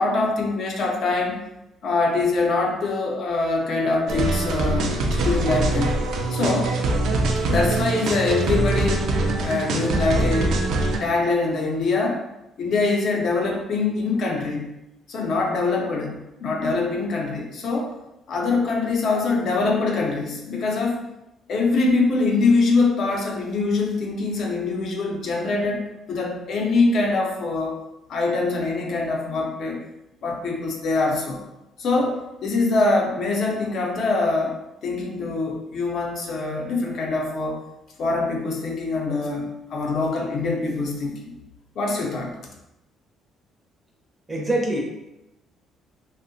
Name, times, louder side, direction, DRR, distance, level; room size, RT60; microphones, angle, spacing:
voice 1, 0.0-1.4 1.8-6.0 6.3-6.7 7.4-10.6 11.0-12.2 12.6-14.7 15.1-17.9 18.3-21.1 21.5-25.8 26.1-27.8 28.1-29.8 30.2-31.4 31.8-34.6 34.8-37.6 38.0-41.3 41.8-42.4, left 3 dB, 55° left, 0 dB, 0.5 m, -23 dB
sound 1, 4.1-11.0, right 2 dB, 70° right, 0.3 m, -23 dB
voice 2, 44.3-44.8, right 1 dB, 15° right, -2 dB, 0.5 m, -23 dB
2.6 x 2.0 x 2.6 m, 0.92 s
cardioid pair, 140°, 0 cm